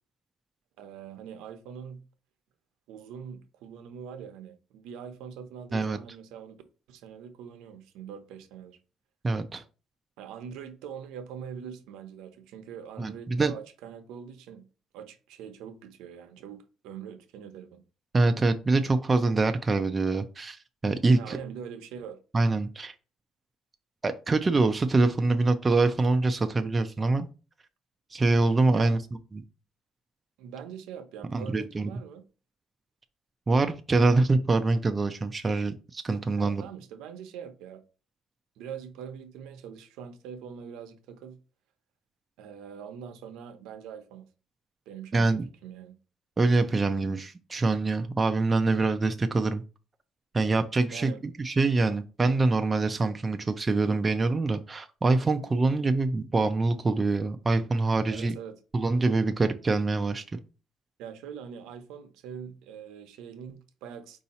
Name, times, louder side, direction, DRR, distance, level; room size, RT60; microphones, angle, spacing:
voice 1, 0.8-2.0 2.9-6.6 6.9-8.8 10.2-14.7 14.9-17.8 21.1-22.2 28.7-28.9 30.4-32.2 36.4-37.8 38.6-41.4 42.4-44.3 44.9-46.0 50.9-51.2 58.1-58.6 61.0-64.2, right 8 dB, 85° right, 0.7 m, -43 dB
voice 2, 9.2-9.6 13.0-13.5 18.1-20.6 20.8-21.4 22.3-22.9 24.0-27.3 28.1-29.0 29.3-29.4 31.3-31.9 33.5-36.6 45.1-45.5 46.4-49.6 50.3-51.1 51.4-58.3 58.7-60.4, right 3 dB, 15° right, 0.3 m, -25 dB
4.6 x 2.8 x 4.1 m
cardioid pair, 165°, 0 cm